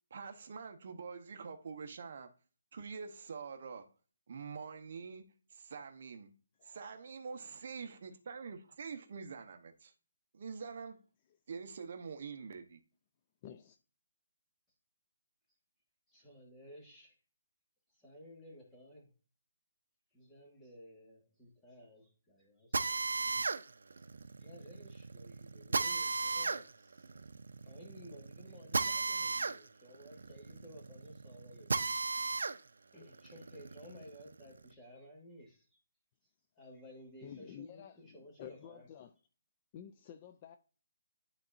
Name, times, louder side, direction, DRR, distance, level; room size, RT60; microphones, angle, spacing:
voice 1, 0.1-2.3 2.7-3.9 4.3-5.2 5.5-6.3 6.6-9.9 10.3-11.0 11.5-12.8, right 5 dB, 45° right, 0.9 m, -45 dB
voice 2, 13.4-13.8 37.2-39.1 39.7-40.6, left 9 dB, 25° left, 0.4 m, -51 dB
voice 3, 16.1-17.1 18.0-19.1 20.1-23.0 24.4-27.1 27.6-31.9 32.9-35.7 36.6-38.9, equal, 10° left, 1.5 m, -55 dB
Drill, 22.7-32.6 33.0-34.6, right 4 dB, 80° right, 0.5 m, -36 dB
11.0 x 4.0 x 2.5 m
hypercardioid pair, 170°, 0 cm